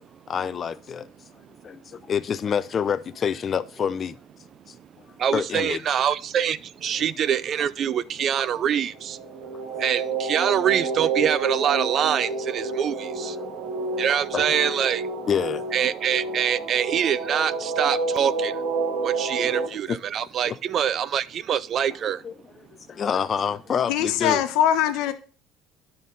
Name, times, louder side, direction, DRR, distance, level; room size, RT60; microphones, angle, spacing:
voice 1, 0.3-1.1 1.6-4.2 4.7-4.8 5.3-6.0 6.9-7.3 8.5-8.6 9.3-9.6 12.7-12.8 13.3-13.4 14.3-14.5 15.2-15.8 19.4-19.5 19.9-20.0 20.4-20.6 22.2-24.4, left 7 dB, 35° left, 0.4 m, -28 dB
voice 2, 5.2-9.2 9.8-13.3 14.0-15.0 15.7-18.5 19.0-22.2, right 9 dB, 45° right, 0.4 m, -24 dB
sound 1, 9.0-19.7, right 3 dB, 75° right, 1.4 m, -29 dB
voice 3, 23.9-25.1, left 10 dB, 75° left, 1.0 m, -22 dB
9.7 x 5.4 x 3.9 m
cardioid pair, 120°, 0 cm